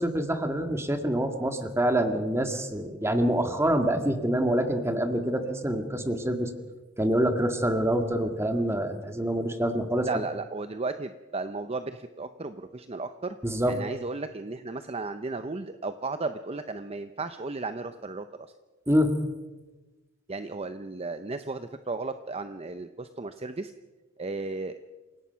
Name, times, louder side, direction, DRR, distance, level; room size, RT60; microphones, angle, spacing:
voice 1, 0.0-6.5 7.0-10.2 13.4-13.7 18.9-19.2, right 1 dB, 15° right, 6 dB, 1.9 m, -26 dB
voice 2, 10.0-13.4 13.7-18.3 20.3-23.7 24.2-24.8, right 3 dB, 30° right, 10 dB, 0.7 m, -34 dB
28.0 x 17.5 x 5.8 m, 1.2 s
head